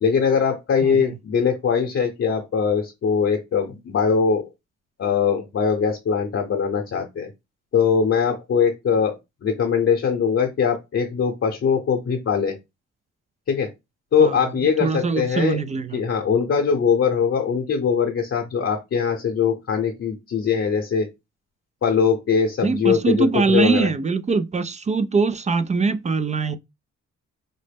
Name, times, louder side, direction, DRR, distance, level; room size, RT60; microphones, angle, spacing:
voice 1, 0.0-4.5 5.0-7.3 7.7-12.6 13.5-13.7 14.1-15.6 15.9-21.1 21.8-23.9, left 6 dB, 45° left, 0.8 m, -21 dB
voice 2, 0.8-1.1 14.2-14.4 14.8-16.0 22.6-26.6, right 4 dB, 25° right, 0.3 m, -22 dB
4.0 x 2.0 x 3.4 m
cardioid pair, 90°, 30 cm